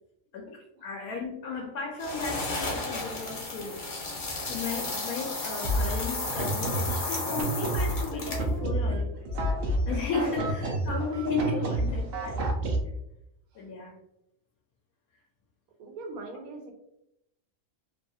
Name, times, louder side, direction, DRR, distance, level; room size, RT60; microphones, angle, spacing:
voice 1, 0.3-4.0 4.5-9.1 9.9-12.6 13.6-13.9, left 4 dB, 90° left, 0 dB, 1.0 m, -34 dB
sound 1, 2.0-8.6, left 2 dB, 45° left, 0.7 m, -34 dB
sound 2, 5.6-12.8, right 1 dB, 60° right, 0.6 m, -30 dB
voice 2, 15.8-16.7, right 3 dB, 90° right, 3 dB, 1.1 m, -41 dB
2.8 x 2.4 x 2.6 m, 0.81 s
omnidirectional pair, 1.5 m